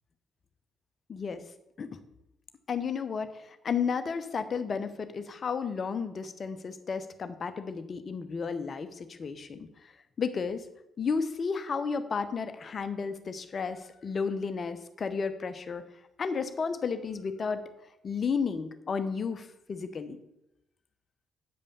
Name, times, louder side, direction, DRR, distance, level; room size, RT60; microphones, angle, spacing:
voice 1, 1.1-1.4 1.8-2.0 2.7-9.9 10.2-10.7 11.0-15.8 16.2-17.6 18.0-20.2, left 5 dB, 45° left, 10 dB, 0.9 m, -33 dB
8.3 x 5.3 x 6.9 m, 0.87 s
figure-of-eight pair, 45°, 0 cm